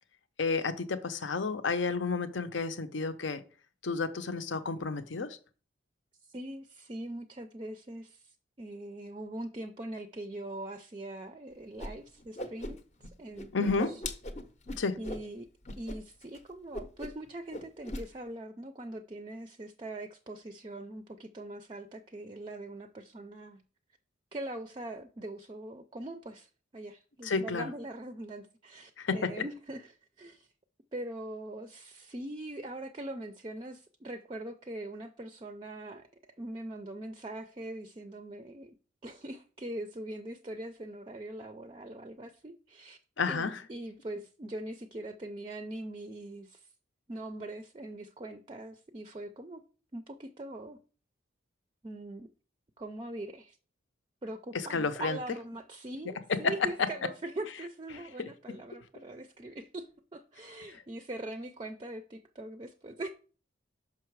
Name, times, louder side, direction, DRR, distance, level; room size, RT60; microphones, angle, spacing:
voice 1, 0.4-3.4 3.8-5.4 13.5-13.9 14.8-15.0 27.2-27.7 29.0-29.3 43.2-43.6 54.5-55.2 56.3-56.5 58.5-58.6, left 4 dB, 75° left, 0.7 m, -31 dB
voice 2, 6.2-12.8 13.2-14.0 15.0-15.5 15.8-23.6 24.3-30.5 30.9-36.0 36.4-38.7 39.0-43.0 43.3-46.7 47.1-49.6 49.9-50.8 51.8-52.3 52.8-53.6 54.2-59.9 60.1-63.1, right 1 dB, 25° right, 0.4 m, -42 dB
Whoosh swoosh swish, 11.8-11.9 12.2-13.1 13.4-15.2 15.6-16.4 16.7-17.2 17.5-18.0, left 1 dB, 35° left, 0.7 m, -39 dB
5.9 x 5.6 x 4.6 m
head